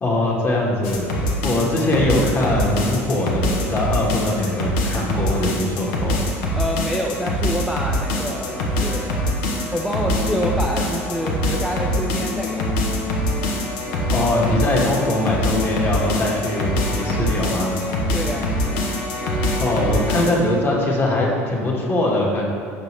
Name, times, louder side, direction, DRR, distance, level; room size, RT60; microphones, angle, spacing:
voice 1, 0.0-1.1 1.4-6.3 14.1-17.7 19.6-22.5, left 1 dB, 30° left, -3 dB, 1.5 m, -21 dB
sound 1, 0.8-20.3, left 1 dB, 75° left, 0.9 m, -24 dB
voice 2, 6.5-9.2 9.7-12.9 18.1-18.5, equal, ahead, -2 dB, 0.5 m, -27 dB
6.8 x 4.9 x 3.1 m, 2.3 s
hypercardioid pair, 70°, 7 cm